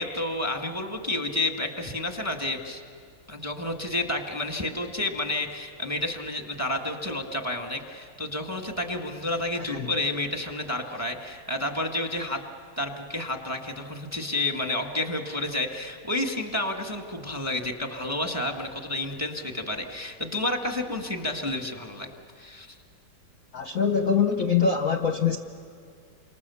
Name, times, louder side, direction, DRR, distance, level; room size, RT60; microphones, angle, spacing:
voice 1, 0.0-2.8 3.3-12.4 12.8-22.1 22.4-22.8, left 2 dB, 10° right, 4 dB, 1.6 m, -30 dB
voice 2, 23.5-25.4, left 6 dB, 50° left, 5 dB, 1.1 m, -23 dB
29.0 x 26.0 x 7.1 m, 2.3 s
omnidirectional pair, 2.2 m